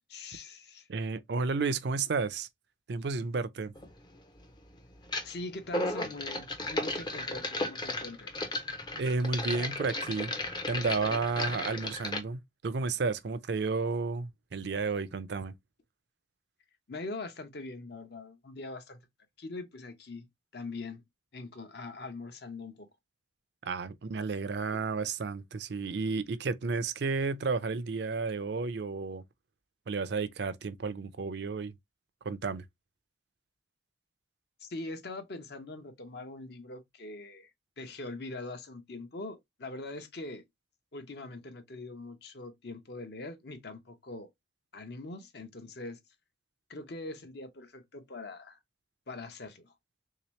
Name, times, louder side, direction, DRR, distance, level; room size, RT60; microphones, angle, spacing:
voice 1, 0.1-0.9 5.2-8.3 16.9-19.0 19.4-20.3 20.5-21.0 21.3-22.9 34.6-37.5 37.8-40.4 40.9-44.3 44.7-46.0 46.7-48.6 49.1-49.7, left 2 dB, 55° left, 0.8 m, -42 dB
voice 2, 0.9-2.5 2.9-3.7 9.0-10.3 10.7-15.5 23.6-29.2 29.9-31.7 32.2-32.6, right 4 dB, 55° right, 0.4 m, -32 dB
sound 1, 3.7-3.9 5.0-5.3 5.6-12.2, left 2 dB, 20° left, 0.5 m, -35 dB
3.5 x 2.8 x 3.0 m
head